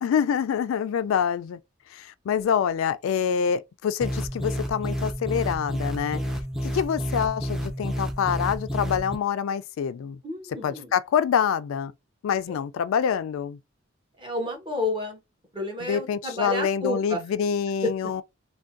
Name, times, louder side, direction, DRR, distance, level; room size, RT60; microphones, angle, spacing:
voice 1, 0.0-1.6 1.9-6.2 6.6-10.2 10.6-11.9 12.2-13.6 15.8-18.2, left 7 dB, 85° left, 0.3 m, -26 dB
sound 1, 4.0-9.2, equal, ahead, 0.5 m, -30 dB
voice 2, 10.2-10.9 14.2-15.2 15.5-17.2, left 1 dB, 25° right, 1.0 m, -31 dB
3.4 x 2.2 x 2.5 m
head